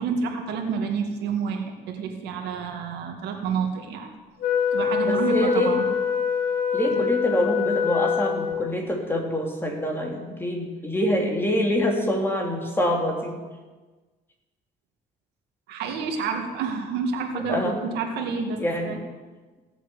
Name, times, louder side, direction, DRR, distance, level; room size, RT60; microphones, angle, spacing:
voice 1, 0.0-4.1 4.7-5.9 6.9-7.0 15.7-19.0, right 5 dB, 80° right, 3 dB, 2.2 m, -29 dB
Wind instrument woodwind instrument, 4.4-8.8, left 7 dB, 80° left, 1.9 m, -24 dB
voice 2, 5.0-5.8 6.7-13.4 17.5-17.8 18.6-19.0, equal, 15° left, 1 dB, 3.1 m, -25 dB
16.5 x 7.7 x 8.2 m, 1.3 s
cardioid pair, 110°, 17 cm